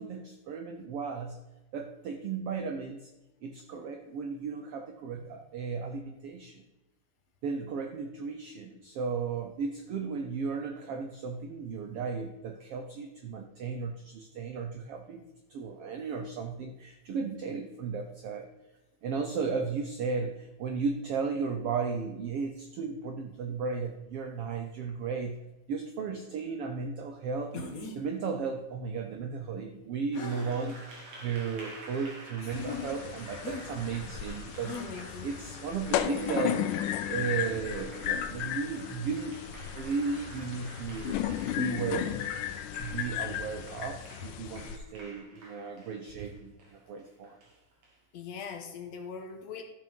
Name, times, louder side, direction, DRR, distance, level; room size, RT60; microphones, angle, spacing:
voice 1, 0.0-1.4 1.7-3.1 3.4-6.6 7.4-18.5 19.0-25.4 25.7-27.6 27.9-34.8 35.2-36.6 37.1-41.2 41.6-42.1 42.8-47.4, right 5 dB, 80° right, 6 dB, 1.3 m, -35 dB
sound 1, 27.5-28.0 30.1-30.8 31.5-31.6 33.4-33.6 34.6-34.9, left 3 dB, 50° left, 1.0 m, -40 dB
Applause, 30.1-48.0, right 2 dB, 55° right, 3.2 m, -49 dB
voice 2, 32.4-33.0 33.5-33.7 34.7-35.4 48.1-49.6, left 7 dB, 70° left, 5 dB, 2.0 m, -41 dB
sound 2, 32.5-44.8, left 10 dB, 85° left, 2.3 m, -35 dB
13.5 x 6.0 x 5.3 m, 1.0 s
omnidirectional pair, 3.7 m